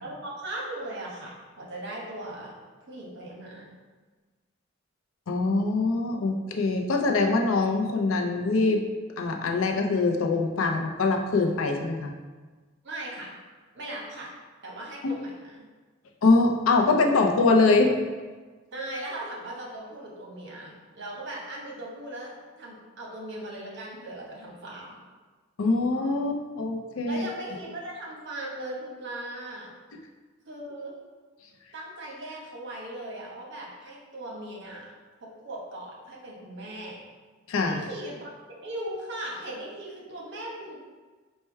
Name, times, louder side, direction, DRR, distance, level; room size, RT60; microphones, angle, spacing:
voice 1, 0.0-2.5 2.9-3.7 12.8-13.4 13.7-14.3 14.6-15.6 18.7-25.0 27.1-29.7 30.5-30.9 31.7-34.9 35.4-37.0 37.7-40.8, right 1 dB, 60° right, -2 dB, 1.0 m, -38 dB
voice 2, 5.3-8.8 9.2-12.1 16.2-17.9 25.6-27.2 37.5-37.8, left 3 dB, 90° left, 3 dB, 0.5 m, -23 dB
4.4 x 2.1 x 4.5 m, 1.3 s
head